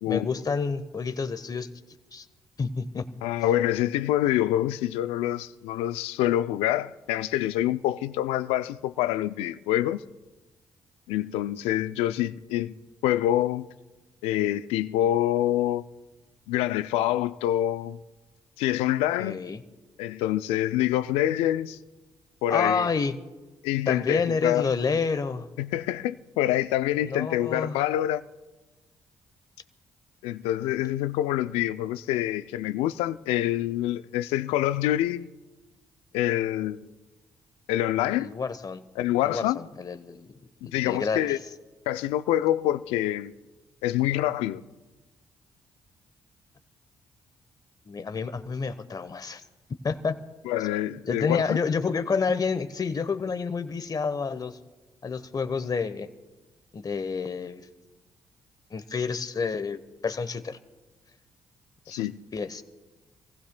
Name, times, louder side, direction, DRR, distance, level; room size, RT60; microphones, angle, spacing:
voice 1, 0.1-1.7 2.1-2.2 2.6-3.1 19.2-19.6 22.5-23.1 23.9-25.5 27.0-27.8 38.2-38.8 39.2-40.3 40.6-41.4 47.9-49.4 49.8-50.2 51.1-54.6 55.0-56.1 56.7-57.7 58.7-60.6 61.9-62.1 62.3-62.6, left 5 dB, 40° left, 0.9 m, -29 dB
voice 2, 3.2-10.0 11.1-12.8 13.0-13.7 14.2-15.9 16.5-18.0 18.6-19.4 20.0-21.8 22.4-22.9 23.6-24.7 25.6-28.2 30.2-35.3 36.1-36.9 37.7-38.3 39.0-39.6 40.6-41.4 41.9-43.3 43.8-44.6 50.4-51.6 61.9-62.2, left 13 dB, 85° left, 0.4 m, -26 dB
26.5 x 15.5 x 2.2 m
supercardioid pair, 50°, 10 cm